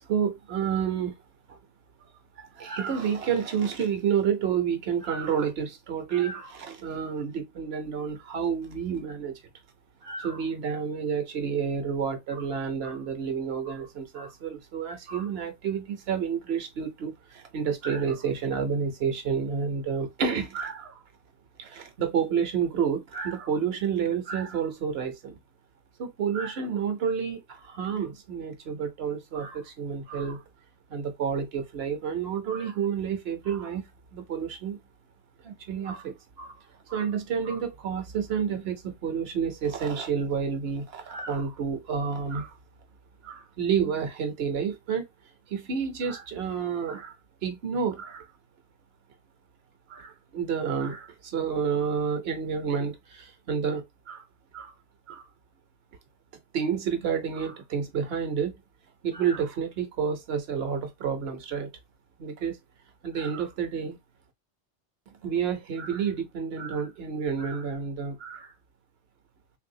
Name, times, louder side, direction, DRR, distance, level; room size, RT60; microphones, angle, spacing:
voice 1, 0.0-1.1 1.5-1.6 2.4-9.4 10.0-21.0 21.6-25.4 26.0-30.4 30.9-34.8 35.4-36.5 36.9-42.6 43.2-45.0 45.5-47.1 47.4-48.3 49.9-54.2 54.5-54.7 55.1-55.3 56.5-58.6 59.0-61.7 62.2-62.6 63.0-64.0 65.2-68.5, right 7 dB, 60° right, 1.0 m, -30 dB
3.4 x 2.7 x 2.7 m
omnidirectional pair, 1.2 m